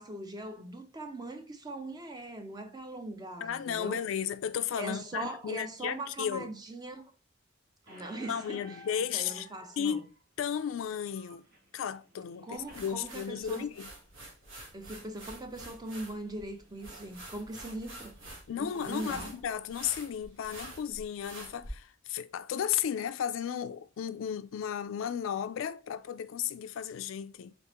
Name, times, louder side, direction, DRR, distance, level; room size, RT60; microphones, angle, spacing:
voice 1, 0.0-4.0 4.8-7.1 7.9-8.8 9.1-10.1 12.4-13.7 14.7-18.2 18.6-19.3, right 2 dB, 20° right, 0.6 m, -41 dB
voice 2, 3.4-6.5 8.3-9.5 9.8-10.1 10.4-11.4 11.7-13.9 18.5-27.5, left 8 dB, 85° left, 0.3 m, -34 dB
Squeak, 7.9-12.9, equal, 55° right, 1.3 m, -54 dB
sound 1, 12.5-21.7, right 2 dB, 85° right, 1.4 m, -48 dB
4.0 x 3.5 x 3.0 m
head